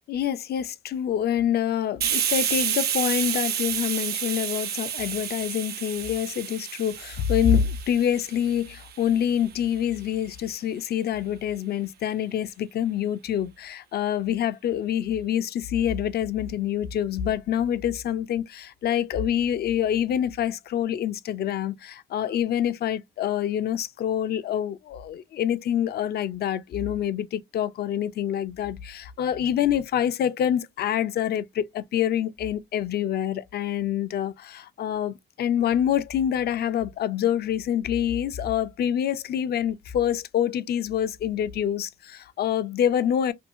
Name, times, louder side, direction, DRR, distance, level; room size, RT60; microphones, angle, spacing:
voice 1, 0.1-43.3, left 9 dB, 55° left, 0.4 m, -26 dB
Hiss, 2.0-9.4, right 9 dB, 55° right, 0.5 m, -30 dB
2.7 x 2.3 x 2.5 m
cardioid pair, 90°, 20 cm